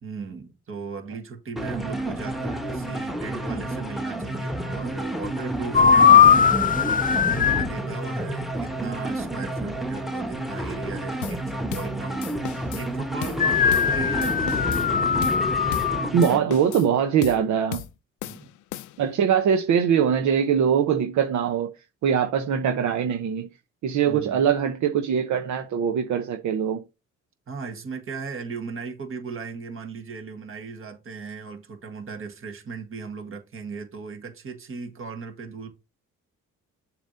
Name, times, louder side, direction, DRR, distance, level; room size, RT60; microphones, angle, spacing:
voice 1, 0.0-12.4 12.7-15.1 18.2-18.5 24.1-24.5 27.5-35.7, right 5 dB, 45° right, 1.7 m, -37 dB
sound 1, 1.6-16.4, right 1 dB, ahead, 1.1 m, -30 dB
sound 2, 5.7-7.7 13.4-16.1, left 7 dB, 30° left, 0.4 m, -19 dB
voice 2, 5.8-6.2 16.1-17.8 19.0-21.7 22.0-23.5 23.8-26.8, right 8 dB, 70° right, 0.8 m, -22 dB
sound 3, 11.2-11.4 11.7-11.9 12.2-12.9 13.2-13.4 13.7-13.9 14.2-14.9 15.2-15.4 15.7-15.9 16.2-16.9 17.2-17.4 17.7-17.9 18.2-19.1, left 13 dB, 80° left, 0.5 m, -36 dB
7.1 x 3.0 x 5.2 m
cardioid pair, 90°, 30 cm